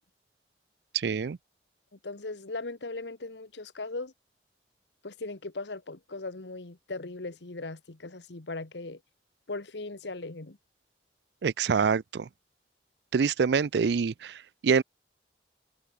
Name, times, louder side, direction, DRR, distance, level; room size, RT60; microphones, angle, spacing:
voice 1, 0.9-1.4 11.4-12.3 13.1-14.8, right 5 dB, 75° right, 0.4 m, -26 dB
voice 2, 1.9-4.1 5.0-9.0 9.5-10.6, left 3 dB, 85° left, 1.4 m, -38 dB
head